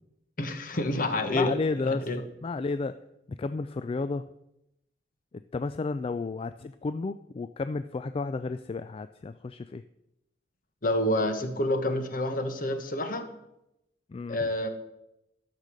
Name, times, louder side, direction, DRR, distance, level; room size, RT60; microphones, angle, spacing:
voice 1, 0.4-2.2 10.8-13.3 14.3-14.7, left 1 dB, 50° left, 8 dB, 1.3 m, -28 dB
voice 2, 1.3-2.1 2.4-3.0 3.4-4.3 5.5-9.8 14.1-14.5, left 3 dB, 30° left, 11 dB, 0.3 m, -32 dB
12.0 x 6.7 x 6.4 m, 0.86 s
head